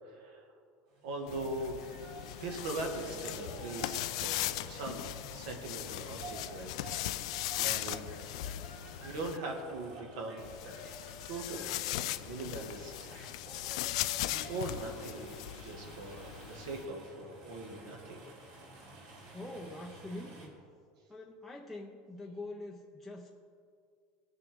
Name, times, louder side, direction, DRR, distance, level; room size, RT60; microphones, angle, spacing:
voice 1, 0.0-0.5 1.0-1.8 2.4-6.7 7.2-8.4 9.0-10.5 11.3-13.7 14.3-15.3 15.6-18.2, right 2 dB, 75° right, 1 dB, 1.8 m, -41 dB
sound 1, 0.9-20.5, right 2 dB, 55° right, 3.1 m, -52 dB
sound 2, 1.3-9.4 10.4-16.9, left 15 dB, 85° left, 0.4 m, -39 dB
voice 2, 19.2-20.6 21.1-23.4, left 2 dB, ahead, -2 dB, 0.5 m, -44 dB
19.0 x 6.7 x 3.6 m, 2.3 s
cardioid pair, 175°, 3 cm